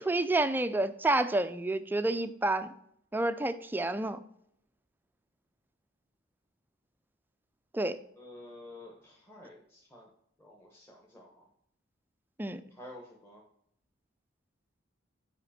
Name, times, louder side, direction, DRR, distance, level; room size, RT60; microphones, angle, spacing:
voice 1, 0.1-2.7 3.1-4.2 7.7-8.0 12.4-12.6, right 2 dB, 10° right, 11 dB, 0.4 m, -29 dB
voice 2, 8.2-10.1 10.4-11.5 12.7-13.4, left 1 dB, 10° left, -3 dB, 1.1 m, -50 dB
8.1 x 5.1 x 4.3 m, 0.72 s
head